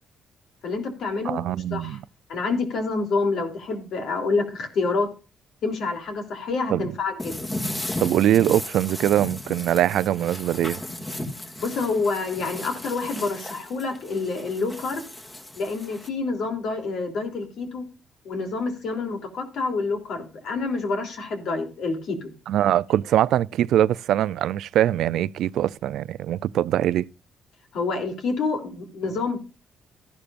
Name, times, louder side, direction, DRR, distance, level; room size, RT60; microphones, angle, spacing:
voice 1, 0.6-2.0 2.3-5.1 5.6-7.5 11.6-15.0 15.5-17.8 18.2-22.3 27.7-29.4, left 3 dB, 75° left, 3.2 m, -27 dB
voice 2, 1.2-2.0 6.7-6.8 8.0-10.8 22.5-27.1, right 12 dB, 80° right, 0.4 m, -22 dB
sound 1, 7.2-16.1, left 1 dB, 20° left, 2.1 m, -35 dB
13.5 x 11.5 x 2.5 m
cardioid pair, 90°, 0 cm